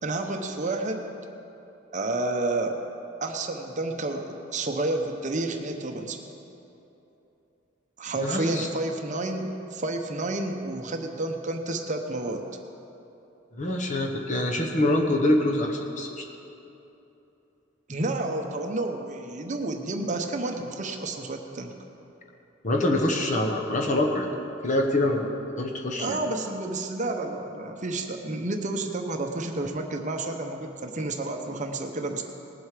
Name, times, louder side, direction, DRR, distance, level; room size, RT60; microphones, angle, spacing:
voice 1, 0.0-1.1 1.9-2.8 3.2-6.3 8.0-12.5 17.9-21.7 26.0-32.2, right 2 dB, 40° right, 4 dB, 0.8 m, -30 dB
voice 2, 8.1-8.7 13.5-16.2 22.6-24.3 24.6-26.2, left 1 dB, 40° left, 1 dB, 1.1 m, -25 dB
19.0 x 7.8 x 5.0 m, 2.9 s
head